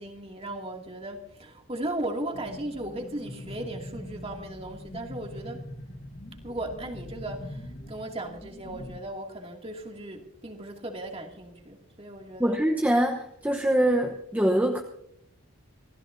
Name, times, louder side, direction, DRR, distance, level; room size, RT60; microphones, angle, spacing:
voice 1, 0.0-5.7 6.4-12.6, right 1 dB, 25° right, 2 dB, 2.4 m, -37 dB
sound 1, 2.3-9.0, left 1 dB, 45° left, 1.4 m, -42 dB
voice 2, 12.4-14.8, right 1 dB, 5° right, 2 dB, 0.9 m, -24 dB
27.0 x 16.0 x 2.7 m, 0.73 s
head